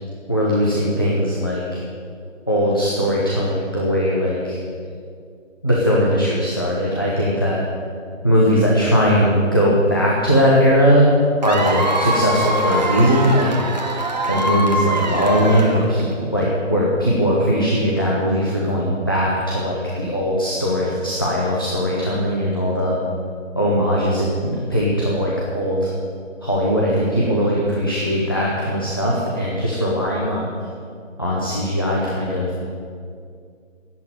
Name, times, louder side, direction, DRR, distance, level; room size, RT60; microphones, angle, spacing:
voice 1, 0.3-1.6 2.5-4.6 5.6-7.6 8.2-11.1 11.4-13.5 14.3-23.0 23.5-25.9 26.4-30.5 31.2-32.5, equal, 20° left, -6 dB, 0.9 m, -19 dB
Cheering / Applause / Crowd, 11.4-16.1, right 1 dB, 35° right, 1.3 m, -23 dB
11.0 x 8.5 x 9.3 m, 2.3 s
hypercardioid pair, 180°, 39 cm